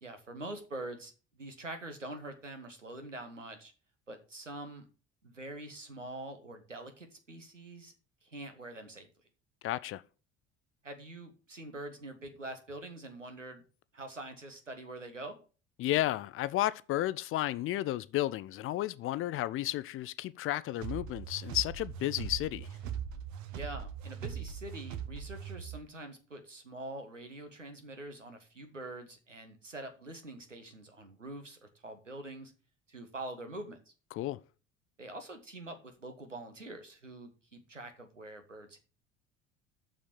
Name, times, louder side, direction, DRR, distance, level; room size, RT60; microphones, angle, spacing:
voice 1, 0.0-3.7 4.1-4.8 5.2-7.9 8.2-9.1 10.8-13.6 13.9-15.4 23.5-32.5 32.9-33.9 35.0-38.8, right 2 dB, 85° right, 1.5 m, -45 dB
voice 2, 9.6-10.0 15.8-22.7 34.1-34.4, left 15 dB, 35° left, 0.5 m, -32 dB
sound 1, 20.8-25.8, right 8 dB, 50° right, 1.2 m, -40 dB
7.2 x 6.2 x 7.0 m
figure-of-eight pair, 60°, 36 cm